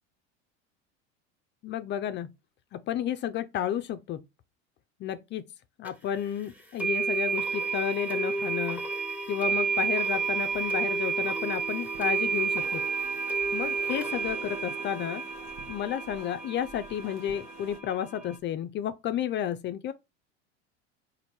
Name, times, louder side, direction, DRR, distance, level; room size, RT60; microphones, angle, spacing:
voice 1, 1.6-2.3 2.7-4.2 5.0-5.5 5.8-8.8 9.3-12.8 13.5-15.2 15.7-19.9, left 10 dB, 35° left, 0.4 m, -32 dB
sound 1, 5.8-5.9 6.8-18.4, right 5 dB, 5° right, 0.9 m, -31 dB
sound 2, 10.5-17.8, right 5 dB, 65° right, 1.1 m, -49 dB
4.4 x 2.6 x 4.1 m
hypercardioid pair, 85°, 36 cm